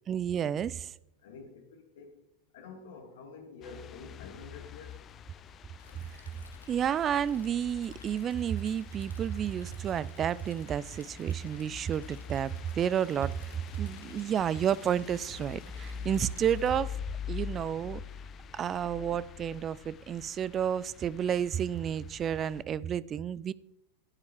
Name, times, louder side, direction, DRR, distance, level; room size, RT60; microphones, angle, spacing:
voice 1, 0.1-0.9 6.7-13.5 13.8-17.0 17.3-18.0 18.5-23.5, right 9 dB, 25° right, 0.4 m, -31 dB
voice 2, 1.2-2.1 2.5-5.0, left 4 dB, 55° left, 2.5 m, -48 dB
sound 1, 3.6-22.6, left 8 dB, 30° left, 0.6 m, -45 dB
Stream, 5.8-16.8, left 3 dB, 80° left, 1.1 m, -58 dB
16.0 x 8.3 x 4.9 m
figure-of-eight pair, 90°, 0 cm